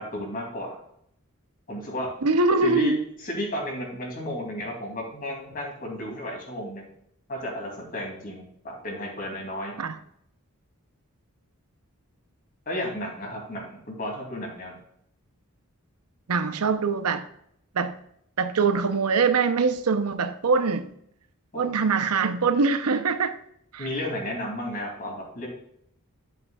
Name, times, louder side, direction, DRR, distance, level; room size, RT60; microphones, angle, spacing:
voice 1, 0.1-0.7 1.7-2.1 2.6-3.0 3.2-6.9 7.3-9.7 12.7-14.8 21.5-21.7 21.9-22.0 23.8-25.5, left 1 dB, 40° left, 2.8 m, -32 dB
voice 2, 2.2-2.9 9.8-10.0 16.3-17.2 17.7-18.0 18.4-20.9 21.5-23.3 23.7-23.9, right 4 dB, 90° right, 0.7 m, -23 dB
11.0 x 7.9 x 2.4 m
head